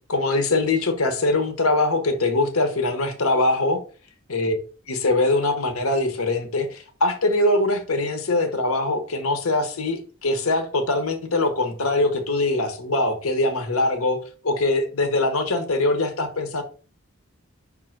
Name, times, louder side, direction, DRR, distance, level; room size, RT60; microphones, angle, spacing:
voice 1, 0.1-3.8 4.3-4.6 4.9-14.2 14.4-16.6, left 2 dB, 85° left, 1.2 m, -22 dB
5.6 x 3.8 x 5.9 m
head